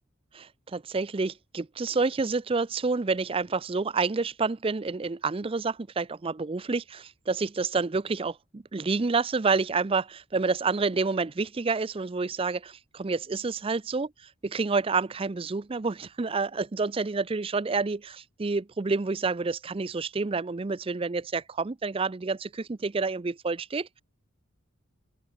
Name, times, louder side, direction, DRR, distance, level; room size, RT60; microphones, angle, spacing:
voice 1, 0.3-14.1 14.4-24.0, right 4 dB, 25° right, 0.5 m, -29 dB
open air
head